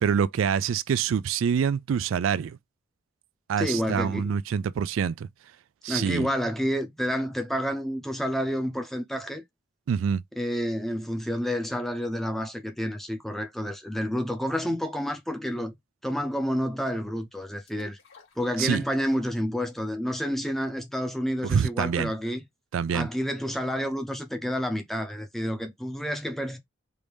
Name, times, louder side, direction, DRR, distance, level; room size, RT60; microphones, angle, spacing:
voice 1, 0.0-2.6 3.5-5.3 5.8-6.3 9.9-10.2 18.6-18.8 21.4-22.1 22.7-23.1, right 7 dB, 85° right, 0.3 m, -26 dB
voice 2, 3.6-4.3 5.9-9.4 10.4-15.7 16.0-18.0 18.4-22.4 22.9-26.6, equal, ahead, 0.6 m, -29 dB
sound 1, 17.6-19.2 19.6-19.7, left 5 dB, 85° left, 2.6 m, -57 dB
4.7 x 2.6 x 3.4 m
head